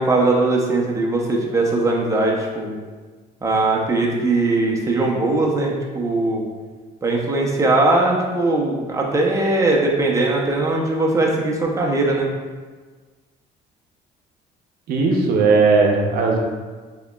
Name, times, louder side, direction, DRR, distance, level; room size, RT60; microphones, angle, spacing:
voice 1, 0.0-2.8 3.4-6.5 7.0-12.3, right 2 dB, 20° right, -2 dB, 0.7 m, -20 dB
voice 2, 14.9-16.4, right 4 dB, 65° right, 1 dB, 0.7 m, -17 dB
4.5 x 2.9 x 2.3 m, 1.4 s
cardioid pair, 110°, 17 cm